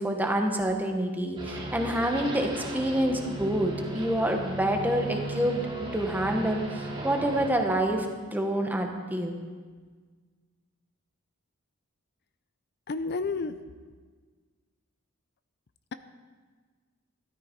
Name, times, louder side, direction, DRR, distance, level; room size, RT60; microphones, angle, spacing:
voice 1, 0.0-9.4, right 1 dB, 10° right, 3 dB, 1.3 m, -27 dB
sound 1, 1.4-7.5, right 1 dB, 25° right, 2.4 m, -36 dB
voice 2, 12.9-13.7, left 4 dB, 50° left, 11 dB, 0.5 m, -31 dB
13.0 x 12.5 x 4.6 m, 1.5 s
head